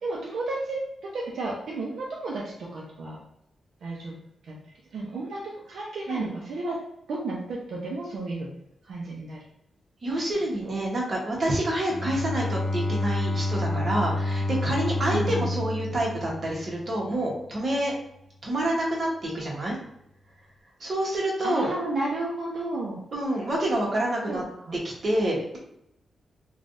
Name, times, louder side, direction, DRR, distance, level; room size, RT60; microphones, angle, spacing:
voice 1, 0.0-3.2 3.8-4.1 4.5-4.6 4.9-6.8 7.1-8.5 8.9-9.4 10.6-10.7 15.1-15.5 21.4-23.0 24.3-24.8, right 2 dB, 75° right, -3 dB, 0.6 m, -32 dB
voice 2, 10.0-17.9 18.4-19.7 20.8-21.7 23.1-24.4 24.8-25.6, right 1 dB, 45° right, -3 dB, 1.1 m, -27 dB
Bowed string instrument, 11.9-17.1, left 2 dB, 45° left, 0.5 m, -29 dB
3.2 x 2.3 x 2.6 m, 0.80 s
wide cardioid pair, 110°, 0 cm